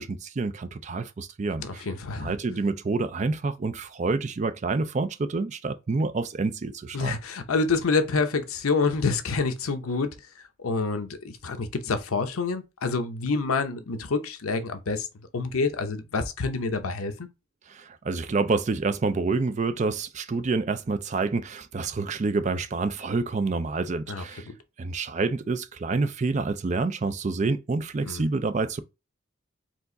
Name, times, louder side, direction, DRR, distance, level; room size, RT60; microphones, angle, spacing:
voice 1, 0.0-1.9 2.2-7.2 17.7-24.5 24.8-28.8, right 3 dB, 35° right, 0.4 m, -28 dB
voice 2, 1.6-2.3 6.9-10.1 10.6-15.1 15.3-17.3 24.1-24.5 28.0-28.3, left 4 dB, 85° left, 0.7 m, -27 dB
4.6 x 2.5 x 3.9 m
head